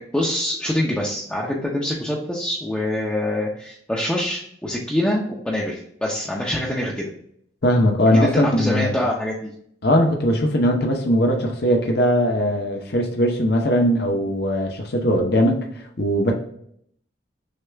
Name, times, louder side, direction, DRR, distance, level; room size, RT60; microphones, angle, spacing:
voice 1, 0.0-7.1 8.2-9.5, left 1 dB, 5° left, -4 dB, 0.5 m, -25 dB
voice 2, 7.6-9.0 9.8-16.3, equal, 55° left, 2 dB, 0.7 m, -20 dB
6.5 x 2.4 x 3.3 m, 0.67 s
head